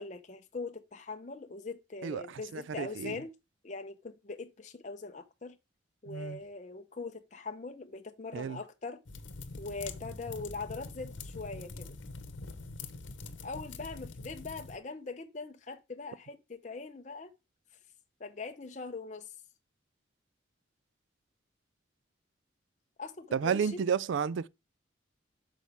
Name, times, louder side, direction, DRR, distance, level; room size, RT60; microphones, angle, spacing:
voice 1, 0.0-3.3 3.6-5.6 6.0-9.0 9.6-12.0 13.4-17.3 18.2-19.3 23.0-23.8, left 3 dB, 40° left, 0.6 m, -42 dB
voice 2, 2.5-3.2 6.1-6.4 8.3-8.6 23.3-24.5, right 7 dB, 75° right, 0.3 m, -31 dB
sound 1, 9.1-14.8, left 3 dB, 80° left, 1.0 m, -44 dB
8.3 x 6.1 x 3.4 m
head